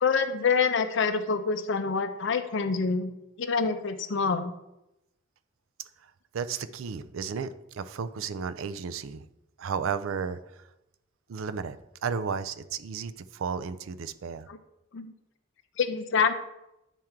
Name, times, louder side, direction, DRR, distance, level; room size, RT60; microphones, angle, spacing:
voice 1, 0.0-3.1 3.4-4.5 14.5-14.6 14.9-15.1 15.8-16.3, left 5 dB, 65° left, 9 dB, 0.6 m, -26 dB
voice 2, 6.3-9.2 9.6-10.6 11.3-11.8 12.0-14.5, right 6 dB, 80° right, 13 dB, 0.4 m, -33 dB
9.0 x 3.6 x 4.4 m, 0.89 s
head